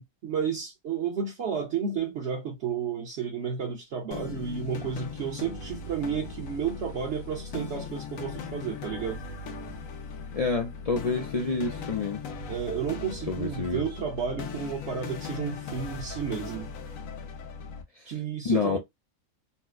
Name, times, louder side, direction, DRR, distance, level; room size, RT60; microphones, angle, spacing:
voice 1, 0.0-9.2 12.5-16.7 18.1-18.8, right 7 dB, 60° right, 1.1 m, -32 dB
sound 1, 4.1-17.8, left 4 dB, 85° left, 1.2 m, -39 dB
voice 2, 10.3-12.2 13.3-13.8 18.0-18.1 18.4-18.8, left 4 dB, 60° left, 0.4 m, -28 dB
4.2 x 2.0 x 2.4 m
omnidirectional pair, 1.4 m